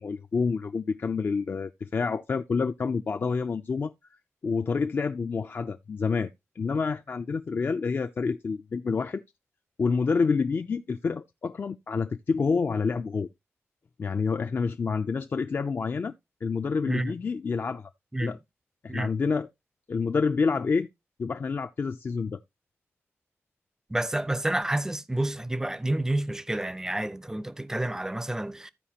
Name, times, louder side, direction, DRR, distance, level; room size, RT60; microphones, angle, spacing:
voice 1, 0.0-3.9 4.4-6.3 6.6-9.2 9.8-13.3 14.0-16.1 16.4-17.9 18.2-18.4 18.8-19.5 19.9-20.9 21.2-22.4, left 5 dB, 45° left, 0.4 m, -28 dB
voice 2, 23.9-28.7, right 1 dB, 10° right, 0.5 m, -29 dB
14.5 x 4.9 x 2.8 m
wide cardioid pair, 155°, 5 cm